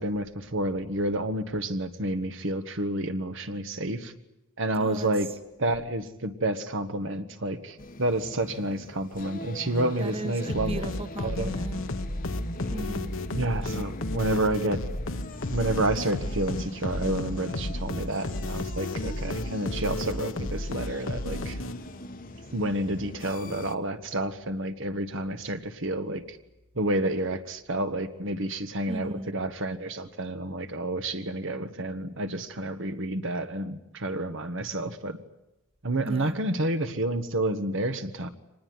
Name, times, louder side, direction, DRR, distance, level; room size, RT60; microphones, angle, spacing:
voice 1, 0.0-4.1 4.6-5.3 5.6-10.8 11.2-11.5 13.3-14.8 15.5-21.6 22.5-26.4 26.7-35.2 35.8-38.3, right 1 dB, 60° right, 1.5 m, -29 dB
voice 2, 4.8-5.1 10.0-11.8 12.7-13.1 28.9-29.3 36.0-36.4, right 1 dB, 25° right, 1.4 m, -36 dB
sound 1, 7.8-23.8, left 1 dB, 40° left, 1.2 m, -40 dB
sound 2, 10.5-22.1, left 1 dB, 60° left, 1.4 m, -33 dB
25.0 x 20.0 x 9.6 m
head